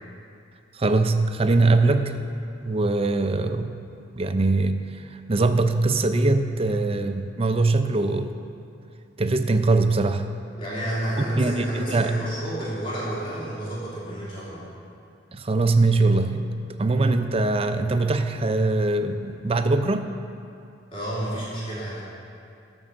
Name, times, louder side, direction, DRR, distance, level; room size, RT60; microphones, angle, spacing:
voice 1, 0.7-2.2 2.6-3.7 4.2-4.8 5.3-8.3 9.2-10.3 11.4-12.1 15.3-16.5 16.8-20.1, right 3 dB, 30° right, 8 dB, 0.5 m, -22 dB
voice 2, 10.5-14.6 20.9-22.0, right 1 dB, 30° left, -8 dB, 2.7 m, -30 dB
11.0 x 6.2 x 6.8 m, 2.5 s
head